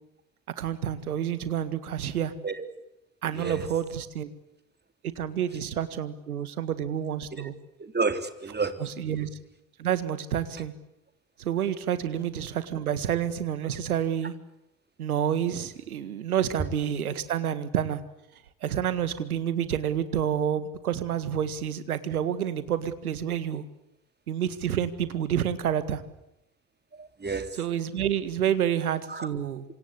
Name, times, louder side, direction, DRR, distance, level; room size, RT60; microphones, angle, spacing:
voice 1, 0.6-2.3 3.2-4.3 5.2-7.5 8.8-9.3 9.8-10.7 11.4-14.3 15.0-18.0 18.6-23.6 24.3-26.0 27.5-29.6, right 9 dB, 85° right, 1.9 m, -29 dB
voice 2, 3.3-3.6 7.8-8.8 27.0-27.6 29.1-29.3, right 4 dB, 25° right, 3.6 m, -30 dB
27.5 x 25.5 x 8.4 m
hypercardioid pair, 55°, 43 cm